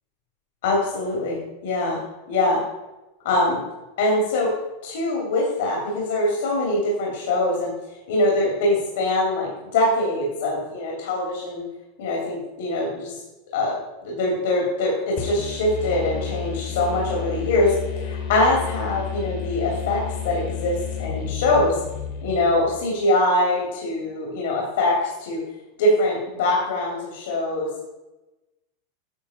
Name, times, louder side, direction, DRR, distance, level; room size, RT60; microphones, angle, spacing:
voice 1, 0.6-1.4 1.6-2.0 2.3-2.6 3.2-3.6 4.0-4.5 4.8-7.7 8.1-11.6 12.0-13.1 13.5-13.7 14.0-21.7 22.2-25.4 25.8-27.7, left 2 dB, 75° left, -2 dB, 2.8 m, -23 dB
sound 1, 15.2-22.8, left 7 dB, 45° left, 1.5 m, -31 dB
10.5 x 6.3 x 4.3 m, 1.0 s
supercardioid pair, 160°, 0 cm